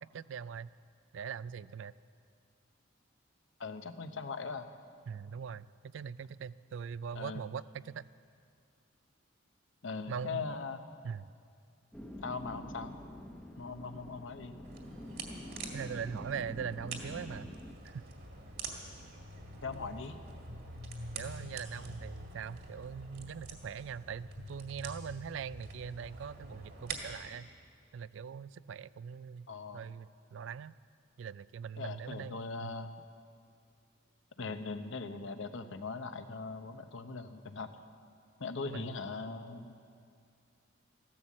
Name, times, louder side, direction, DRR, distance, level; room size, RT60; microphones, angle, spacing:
voice 1, 0.0-0.7 1.1-1.9 5.1-5.7 5.9-8.1 10.1-10.4 11.0-11.3 15.7-17.5 17.8-18.0 21.1-27.5 27.9-29.5 29.7-30.7 31.2-32.7 38.7-38.9, right 7 dB, 70° right, 18 dB, 0.3 m, -41 dB
voice 2, 3.6-4.7 7.1-7.4 9.8-10.8 12.2-12.9 13.6-14.6 19.6-20.2 29.5-29.8 31.8-32.9 34.4-37.7 38.4-39.7, left 4 dB, 70° left, 8 dB, 0.9 m, -40 dB
sound 1, 11.9-17.7, left 1 dB, 5° left, 0.9 m, -47 dB
sound 2, 14.6-27.3, right 2 dB, 55° right, 1.9 m, -46 dB
15.5 x 12.0 x 7.4 m, 2.3 s
head